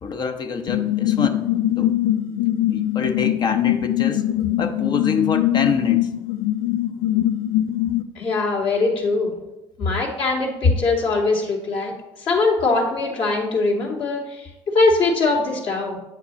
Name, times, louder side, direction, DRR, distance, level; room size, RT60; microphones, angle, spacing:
voice 1, 0.0-1.9 2.7-4.2 4.6-6.1, left 5 dB, 45° left, 7 dB, 0.9 m, -26 dB
sound 1, 0.7-8.0, left 13 dB, 85° left, 0.5 m, -22 dB
voice 2, 8.1-9.3 9.8-11.9 12.2-16.0, left 3 dB, 60° left, -2 dB, 2.5 m, -22 dB
8.4 x 5.9 x 4.1 m, 0.96 s
supercardioid pair, 80°, 10 cm